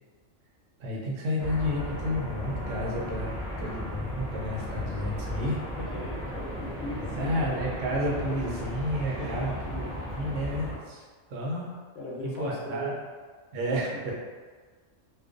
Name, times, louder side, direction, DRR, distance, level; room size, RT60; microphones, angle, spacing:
voice 1, 0.8-5.6 7.0-9.8 10.1-11.0 11.3-11.7 12.2-12.9 13.5-14.1, equal, 75° right, -3 dB, 0.9 m, -31 dB
sound 1, 1.4-10.8, equal, 5° right, 0.3 m, -35 dB
voice 2, 5.8-7.6 9.2-9.7 12.0-12.9 13.9-14.1, left 1 dB, 70° left, -4 dB, 0.8 m, -38 dB
2.4 x 2.2 x 2.4 m, 1.4 s
omnidirectional pair, 1.3 m